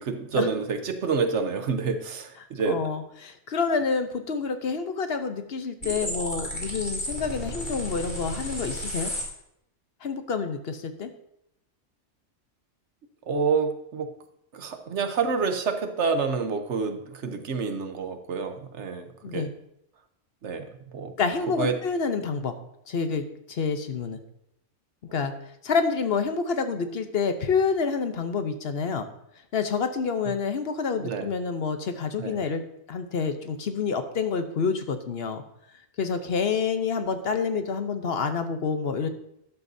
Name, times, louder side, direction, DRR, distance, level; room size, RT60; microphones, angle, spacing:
voice 1, 0.0-2.8 13.3-14.1 14.5-19.5 20.4-20.7 20.9-21.1 21.6-21.8 31.0-31.3 32.2-32.3, right 5 dB, 75° right, 8 dB, 1.2 m, -28 dB
voice 2, 2.7-9.1 10.0-11.1 19.2-19.5 21.2-22.5 22.9-24.2 25.1-25.3 25.6-29.1 29.5-32.6 32.9-35.4 36.0-39.1, left 5 dB, 60° left, 8 dB, 1.0 m, -28 dB
sound 1, 5.8-9.2, equal, 40° left, 2.5 m, -33 dB
12.5 x 10.5 x 2.7 m, 0.78 s
omnidirectional pair, 1.2 m